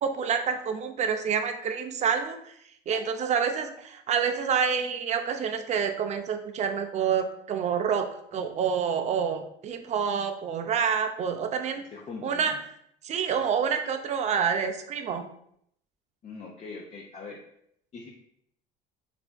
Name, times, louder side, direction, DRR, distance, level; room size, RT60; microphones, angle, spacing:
voice 1, 0.0-2.5 2.9-8.1 8.3-11.8 12.2-12.5 13.0-15.2, right 7 dB, 35° right, 6 dB, 0.4 m, -27 dB
voice 2, 11.9-12.6 16.2-17.4 17.9-18.1, left 4 dB, 35° left, -2 dB, 0.5 m, -41 dB
3.2 x 2.5 x 2.2 m, 0.70 s
supercardioid pair, 80°, 20 cm